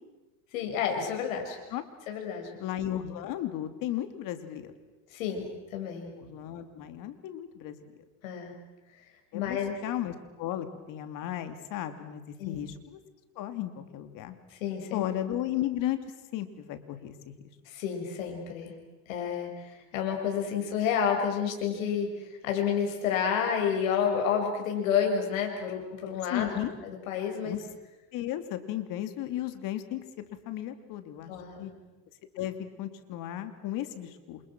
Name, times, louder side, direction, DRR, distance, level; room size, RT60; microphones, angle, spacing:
voice 1, 0.5-1.6 2.1-2.5 5.1-6.1 8.2-8.5 9.3-9.7 12.4-12.6 14.6-15.0 17.7-18.7 19.1-19.5 19.9-22.1 22.4-26.5 26.8-27.6 31.3-31.7, left 7 dB, 90° left, 3 dB, 7.0 m, -30 dB
voice 2, 2.6-4.7 6.2-7.9 9.3-13.0 13.4-14.4 14.9-16.0 16.3-17.3 26.3-26.7 27.4-27.6 28.1-31.3 31.6-31.7 32.4-34.4, left 12 dB, 55° left, 9 dB, 2.9 m, -35 dB
29.0 x 27.5 x 6.2 m, 1.1 s
supercardioid pair, 125°, 40 cm